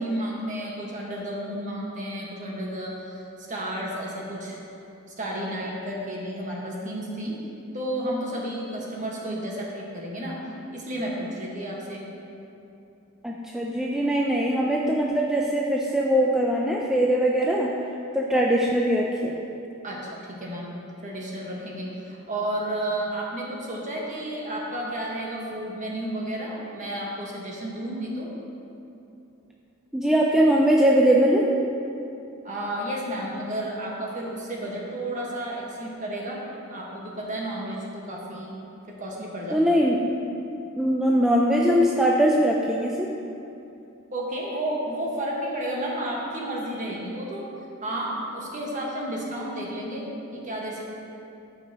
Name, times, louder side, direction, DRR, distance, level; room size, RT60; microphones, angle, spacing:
voice 1, 0.0-3.2 3.5-4.6 5.2-7.4 7.7-10.4 10.7-12.0 19.8-28.3 32.4-36.4 36.7-38.5 39.0-39.6 44.1-47.5 47.8-50.8, right 1 dB, 35° right, -3 dB, 1.3 m, -32 dB
voice 2, 13.2-17.7 18.1-19.3 29.9-31.5 39.5-40.0 40.8-43.1, equal, 5° right, -2 dB, 0.4 m, -21 dB
13.5 x 5.5 x 2.9 m, 2.8 s
head